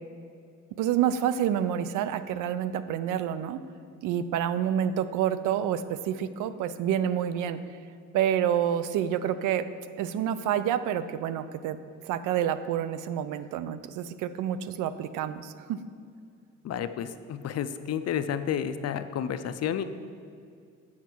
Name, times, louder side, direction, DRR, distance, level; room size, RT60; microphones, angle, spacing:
voice 1, 0.8-3.6 4.0-7.6 8.1-9.6 10.0-11.8 12.0-15.8, right 10 dB, 90° right, 13 dB, 0.5 m, -28 dB
voice 2, 16.6-19.8, left 9 dB, 55° left, 11 dB, 0.5 m, -31 dB
7.2 x 5.6 x 6.2 m, 2.3 s
cardioid pair, 90°, 30 cm